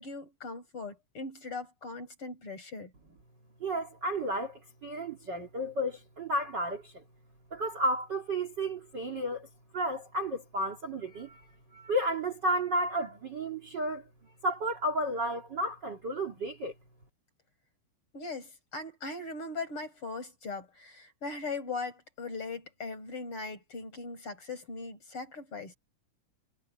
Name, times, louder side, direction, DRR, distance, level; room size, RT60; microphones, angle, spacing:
voice 1, 0.0-2.9 18.1-25.7, left 3 dB, 40° left, 6.5 m, -39 dB
voice 2, 3.6-6.9 7.5-9.5 9.7-11.4 11.7-14.0 14.4-16.7, right 1 dB, 35° right, 2.4 m, -32 dB
omnidirectional pair, 4.0 m